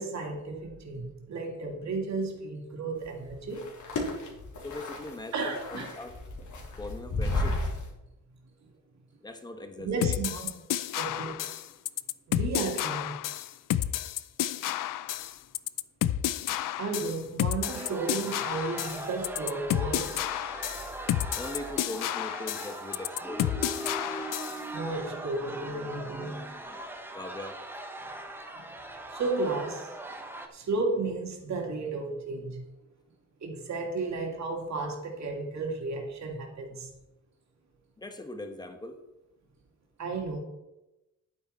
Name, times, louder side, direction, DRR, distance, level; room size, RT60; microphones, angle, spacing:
voice 1, 0.0-3.7 5.3-5.9 9.8-10.5 11.0-11.4 12.3-13.2 16.8-20.3 24.7-26.4 29.1-29.9 30.5-32.6 33.4-36.9 40.0-40.4, right 3 dB, 60° right, 1 dB, 2.6 m, -33 dB
sound 1, 3.0-7.9, left 2 dB, 65° left, 3.1 m, -34 dB
voice 2, 4.6-6.1 6.8-7.6 9.2-10.2 21.4-23.6 27.1-27.6 38.0-39.0, left 2 dB, 15° left, 7 dB, 1.1 m, -40 dB
sound 2, 10.0-24.6, left 12 dB, 90° left, 0.5 m, -31 dB
sound 3, 17.6-30.5, right 1 dB, 5° right, 1.0 m, -40 dB
11.0 x 9.5 x 4.4 m, 0.96 s
wide cardioid pair, 170°, 32 cm